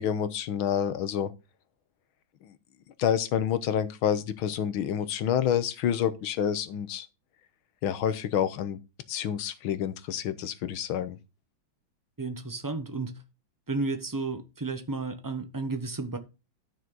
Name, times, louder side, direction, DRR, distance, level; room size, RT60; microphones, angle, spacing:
voice 1, 0.0-1.3 2.4-2.5 3.0-7.1 7.8-8.8 9.1-11.2, left 9 dB, 90° left, 1.8 m, -28 dB
voice 2, 12.2-13.2 13.7-16.2, right 3 dB, 20° right, 0.5 m, -32 dB
12.0 x 6.3 x 3.9 m
omnidirectional pair, 2.2 m